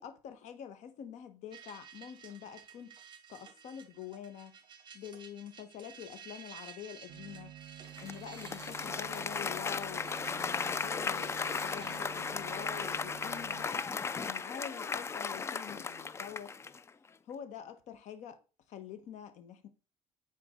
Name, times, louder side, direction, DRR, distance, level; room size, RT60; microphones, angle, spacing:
voice 1, 0.0-3.0 3.3-4.6 4.9-7.5 8.0-13.9 14.2-16.5 17.2-18.4 18.7-19.7, left 9 dB, 65° left, 1.4 m, -46 dB
sound 1, 1.5-15.9, right 7 dB, 40° right, 1.2 m, -55 dB
sound 2, 7.1-13.7, right 12 dB, 65° right, 0.7 m, -51 dB
Applause, 8.0-16.9, left 5 dB, 20° left, 0.4 m, -36 dB
9.6 x 4.6 x 3.8 m
cardioid pair, 120°, 13 cm